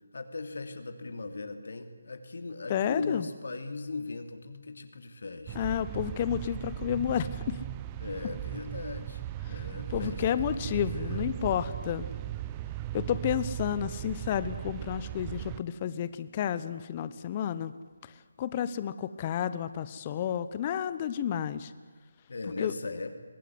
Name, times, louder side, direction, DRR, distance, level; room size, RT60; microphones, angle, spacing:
voice 1, 0.1-5.7 8.0-9.2 9.5-11.4 22.3-23.1, left 3 dB, 65° left, 8 dB, 2.8 m, -39 dB
voice 2, 2.7-3.3 5.5-7.6 9.5-9.6 9.9-12.0 12.9-17.7 18.0-21.7 22.6-22.7, left 9 dB, 30° left, 14 dB, 1.0 m, -31 dB
sound 1, 5.5-15.6, right 13 dB, 20° right, 0.8 m, -37 dB
23.5 x 18.5 x 9.7 m, 1.5 s
figure-of-eight pair, 155°, 0 cm